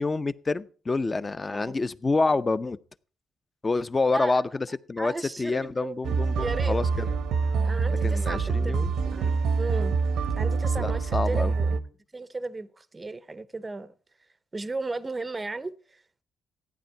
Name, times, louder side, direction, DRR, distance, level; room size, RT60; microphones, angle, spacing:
voice 1, 0.0-2.8 3.6-5.1 5.4-7.1 8.0-8.9 10.8-11.5, left 3 dB, 25° left, 0.6 m, -27 dB
voice 2, 4.1-4.4 5.0-6.0 6.4-6.8 7.6-10.0 10.3-11.8 12.1-13.9 14.5-16.2, right 3 dB, 20° right, 0.6 m, -35 dB
sound 1, 6.0-11.8, right 4 dB, 80° right, 0.8 m, -25 dB
14.0 x 9.4 x 4.6 m
cardioid pair, 90°, 0 cm